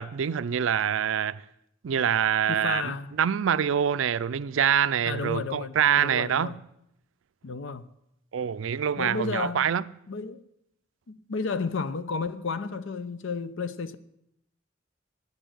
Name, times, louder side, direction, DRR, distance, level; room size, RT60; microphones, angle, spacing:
voice 1, 0.0-1.4 1.8-2.9 3.2-6.6 8.3-9.8, right 8 dB, 70° right, 0.4 m, -25 dB
voice 2, 2.5-3.1 5.0-6.6 7.4-7.9 9.0-9.7 10.1-10.4 11.1-14.0, left 4 dB, 65° left, 0.6 m, -32 dB
10.5 x 9.0 x 7.6 m
head